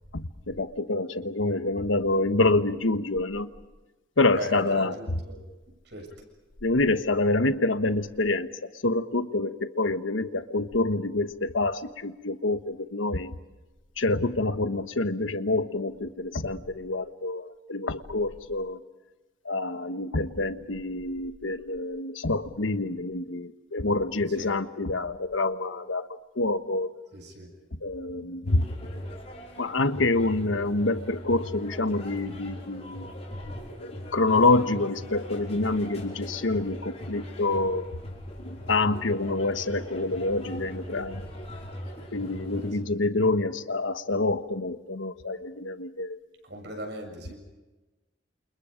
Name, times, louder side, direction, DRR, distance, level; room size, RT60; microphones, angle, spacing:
voice 1, 0.1-3.5 4.2-5.0 6.6-13.3 14.0-18.8 19.4-26.1 26.4-26.9 27.8-28.7 29.6-33.1 34.1-37.9 38.4-41.3 42.1-46.2, left 2 dB, 90° left, 11 dB, 1.2 m, -27 dB
voice 2, 4.3-5.5 5.9-6.1 24.3-24.5 27.1-27.5 42.4-42.8 46.4-47.4, equal, 60° right, 3 dB, 7.1 m, -38 dB
sound 1, 28.5-42.7, equal, 35° left, 5.5 m, -39 dB
29.0 x 28.5 x 5.2 m, 1.1 s
head